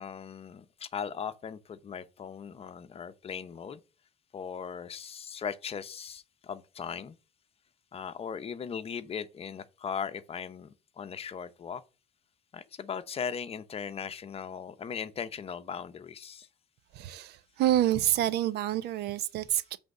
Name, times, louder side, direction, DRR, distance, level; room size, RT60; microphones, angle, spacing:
voice 1, 0.0-3.8 4.3-7.1 7.9-11.8 12.5-16.5, left 7 dB, 35° left, 0.8 m, -38 dB
voice 2, 16.9-19.8, right 12 dB, 75° right, 0.7 m, -28 dB
7.8 x 3.5 x 6.5 m
cardioid pair, 110°, 17 cm